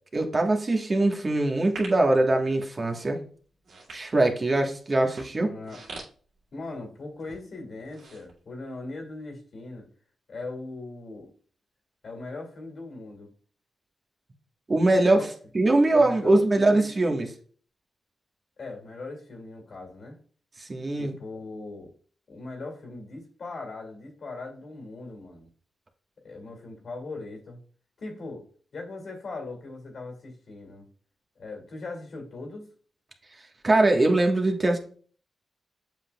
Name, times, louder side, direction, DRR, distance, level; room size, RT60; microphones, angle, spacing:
voice 1, 0.1-3.2 3.9-5.5 14.7-15.2 15.5-17.3 20.6-21.1 33.6-34.8, right 2 dB, 40° right, 2 dB, 1.3 m, -22 dB
sound 1, 1.6-2.1 2.7-3.0 3.5-4.5 5.0-6.9 7.2-7.4 7.8-8.9 9.3-9.4, right 3 dB, 80° right, 2.1 m, -43 dB
voice 2, 5.4-5.8 6.5-9.9 10.3-11.3 12.0-13.3 14.9-15.3 15.9-16.9 18.6-20.2 21.0-21.9 22.3-25.5 26.2-27.6 28.0-28.4 28.7-30.9 31.4-32.7, left 3 dB, 65° left, 2 dB, 2.3 m, -39 dB
7.5 x 5.6 x 2.3 m, 0.43 s
cardioid pair, 60°, 0 cm